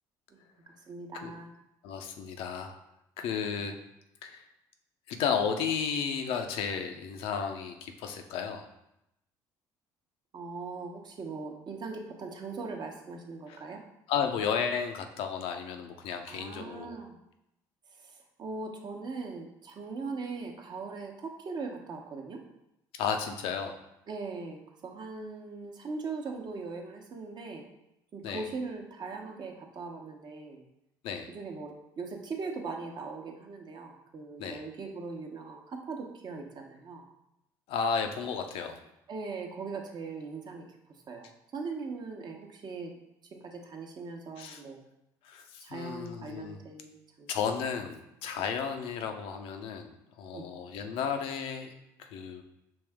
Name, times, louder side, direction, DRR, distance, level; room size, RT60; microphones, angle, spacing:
voice 1, 0.9-1.5 10.3-13.8 16.3-17.2 18.4-22.4 24.1-27.7 28.1-30.6 31.3-37.1 39.1-40.7 41.1-42.9 43.3-44.8 45.6-47.3 50.3-50.5, right 4 dB, 50° right, 2 dB, 0.9 m, -40 dB
voice 2, 1.8-2.8 3.2-3.8 4.2-4.5 5.1-8.6 13.5-13.6 14.1-17.0 22.9-23.8 28.2-28.5 31.0-31.3 34.4-34.6 37.7-38.8 44.4-44.6 45.2-46.6 47.3-51.7 52.0-52.4, left 6 dB, 70° left, 5 dB, 0.5 m, -33 dB
5.3 x 2.7 x 3.4 m, 0.84 s
hypercardioid pair, 65°, 10 cm